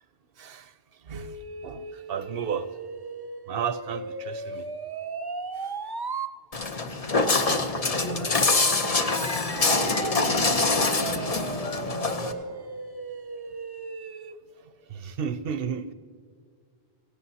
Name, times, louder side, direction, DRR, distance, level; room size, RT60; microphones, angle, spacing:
voice 1, 0.4-0.7 1.1-1.4 1.6-2.7 3.5-4.7 5.6-5.7 7.0-7.1 14.9-15.9, right 7 dB, 70° right, 12 dB, 0.8 m, -33 dB
sound 1, 1.1-6.3 8.5-14.4, right 3 dB, 35° right, 0.4 m, -36 dB
Walk footsteps, 6.5-12.3, left 3 dB, 40° left, 0.9 m, -25 dB
voice 2, 7.3-12.6, equal, 65° left, 0 dB, 3.7 m, -43 dB
18.0 x 17.0 x 2.8 m, 2.1 s
omnidirectional pair, 1.1 m